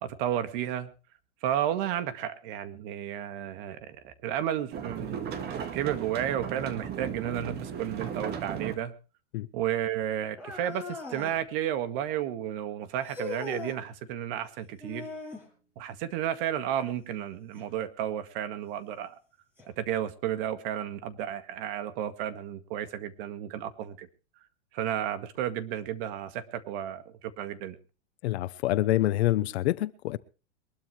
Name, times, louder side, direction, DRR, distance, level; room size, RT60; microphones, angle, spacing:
voice 1, 0.0-0.9 1.4-5.3 5.7-8.9 9.5-15.1 15.8-19.1 19.8-24.1 24.7-27.8, right 11 dB, 50° right, 1.9 m, -32 dB
sound 1, 4.7-8.7, right 7 dB, 30° right, 1.9 m, -36 dB
sound 2, 10.4-11.4 13.0-13.8 14.8-15.5 17.6-17.7 18.5-18.6 19.6-19.7, left 4 dB, 5° right, 7.5 m, -39 dB
voice 2, 28.2-30.2, left 16 dB, 65° left, 1.0 m, -26 dB
23.0 x 12.5 x 3.3 m
supercardioid pair, 140°, 35 cm